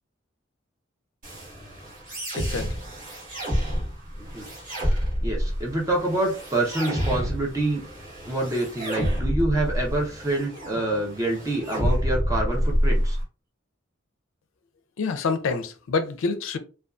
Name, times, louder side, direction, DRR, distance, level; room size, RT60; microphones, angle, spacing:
sound 1, 1.2-13.2, equal, 40° right, 1.2 m, -28 dB
voice 1, 2.3-2.7 15.0-16.6, left 4 dB, 80° left, 0.4 m, -27 dB
voice 2, 5.2-7.8 8.3-13.2, right 2 dB, 15° right, 0.6 m, -26 dB
2.5 x 2.3 x 2.3 m
head